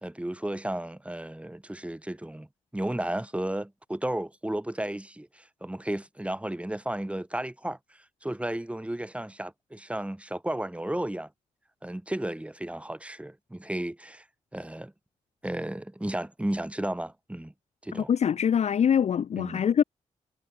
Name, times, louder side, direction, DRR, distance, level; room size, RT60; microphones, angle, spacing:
voice 1, 0.0-2.5 2.7-11.3 11.8-14.2 14.5-14.9 15.4-17.5 17.8-18.1 19.4-19.6, right 1 dB, 10° right, 2.8 m, -33 dB
voice 2, 17.9-19.8, left 8 dB, 60° left, 0.7 m, -24 dB
supercardioid pair, 50°, 13 cm